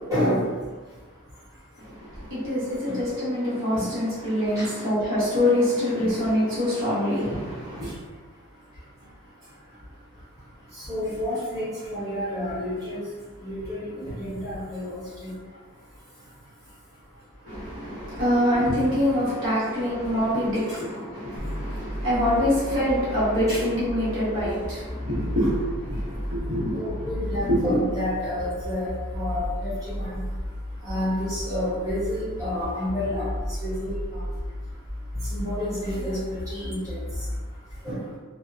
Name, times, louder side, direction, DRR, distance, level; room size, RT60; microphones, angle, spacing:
voice 1, 0.1-0.4 2.9-3.0 3.7-3.8 4.5-4.7 6.0-6.1 10.8-13.0 13.4-15.3 23.5-23.6 25.4-25.5 26.7-30.2 30.8-33.3 33.6-34.2 35.3-36.2 36.5-37.0 37.8-38.0, left 1 dB, 15° right, -12 dB, 1.1 m, -29 dB
voice 2, 1.8-7.9 17.4-27.1 27.4-27.6, left 1 dB, 65° right, -10 dB, 1.0 m, -25 dB
sound 1, 21.4-37.4, equal, ahead, 0.6 m, -33 dB
2.8 x 2.0 x 2.3 m, 1.4 s
head